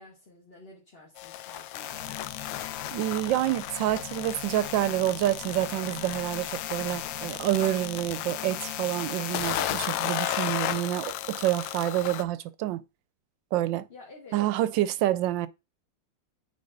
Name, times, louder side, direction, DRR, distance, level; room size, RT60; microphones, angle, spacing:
voice 1, 0.0-2.2 13.9-14.4, left 2 dB, 35° left, 1.7 m, -50 dB
sound 1, 1.2-12.2, left 12 dB, 85° left, 1.3 m, -34 dB
sound 2, 1.9-11.4, left 9 dB, 60° left, 1.4 m, -46 dB
voice 2, 2.9-12.8 13.5-13.9 14.3-15.5, right 14 dB, 85° right, 1.3 m, -28 dB
8.7 x 3.9 x 3.9 m
omnidirectional pair, 2.0 m